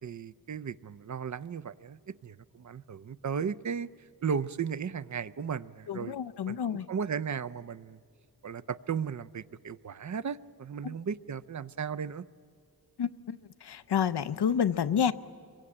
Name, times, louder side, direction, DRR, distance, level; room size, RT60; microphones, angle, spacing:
voice 1, 0.0-3.9 4.2-6.2 6.5-8.0 8.4-12.2, right 6 dB, 45° right, 15 dB, 0.5 m, -35 dB
voice 2, 5.9-6.9 10.8-10.9 13.0-15.1, left 8 dB, 80° left, 14 dB, 0.7 m, -29 dB
25.5 x 22.5 x 8.7 m, 2.3 s
wide cardioid pair, 80°, 39 cm